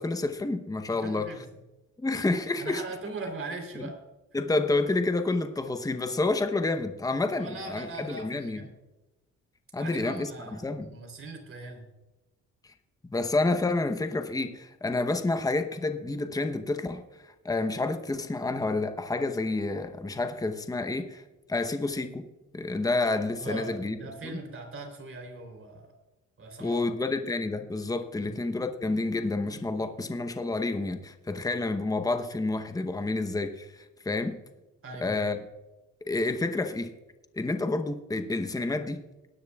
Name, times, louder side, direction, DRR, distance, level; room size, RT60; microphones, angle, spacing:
voice 1, 0.0-1.4 2.0-2.8 3.8-3.9 4.3-8.6 9.7-10.9 12.6-12.7 13.1-21.2 21.5-22.2 22.5-24.0 24.2-24.4 26.6-34.4 35.0-35.4 36.0-36.9 37.3-39.0, left 2 dB, 10° left, 8 dB, 0.8 m, -29 dB
voice 2, 0.9-1.4 2.6-3.9 7.4-8.7 9.8-11.8 23.4-25.8 26.4-26.9 28.2-28.3 34.8-35.2, right 3 dB, 45° right, 4 dB, 3.4 m, -40 dB
19.5 x 10.5 x 2.3 m, 1.0 s
cardioid pair, 90°, 30 cm